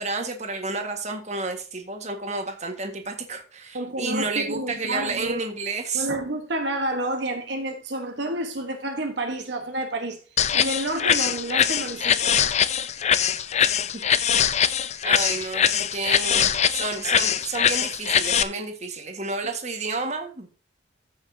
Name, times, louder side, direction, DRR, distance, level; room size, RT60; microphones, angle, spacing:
voice 1, 0.0-6.1 13.9-14.1 15.0-20.5, right 3 dB, 40° right, 1.6 m, -30 dB
voice 2, 3.7-5.4 5.9-10.2 10.5-12.5, right 1 dB, 65° right, 1.2 m, -29 dB
sound 1, 10.4-18.4, left 8 dB, 35° left, 0.5 m, -22 dB
14.5 x 6.4 x 2.8 m
head